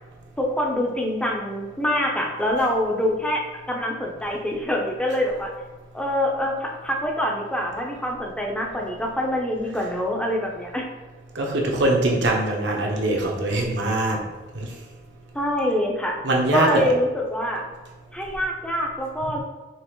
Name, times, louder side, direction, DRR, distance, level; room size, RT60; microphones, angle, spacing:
voice 1, 0.4-5.5 5.9-10.8 15.3-16.2 16.5-17.7 18.1-19.4, left 1 dB, 5° left, -1 dB, 0.6 m, -25 dB
voice 2, 11.3-14.2 14.5-14.7 16.2-16.9, right 1 dB, 70° right, -1 dB, 0.9 m, -22 dB
5.4 x 3.1 x 3.0 m, 1.2 s
head